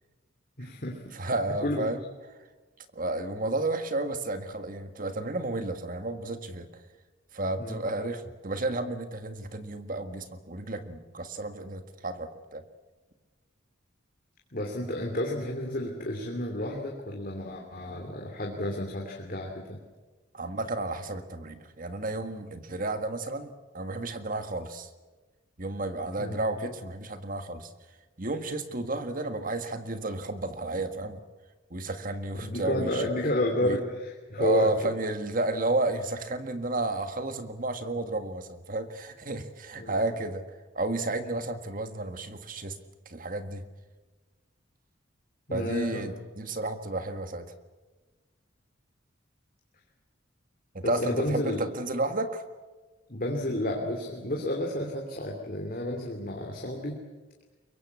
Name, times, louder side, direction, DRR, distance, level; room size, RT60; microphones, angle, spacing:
voice 1, 0.6-1.0 1.6-1.8 7.6-7.8 14.5-19.8 26.2-26.4 32.4-34.9 39.8-39.9 45.5-46.1 50.8-51.7 53.1-57.0, left 1 dB, 45° left, 1 dB, 2.9 m, -31 dB
voice 2, 1.1-2.0 2.9-6.8 7.3-12.6 20.3-24.9 25.6-27.7 28.2-31.2 31.7-33.0 33.6-33.8 34.4-42.8 43.0-43.6 45.5-47.5 50.7-52.4, right 2 dB, 45° right, 9 dB, 1.7 m, -32 dB
23.5 x 23.0 x 8.4 m, 1.2 s
head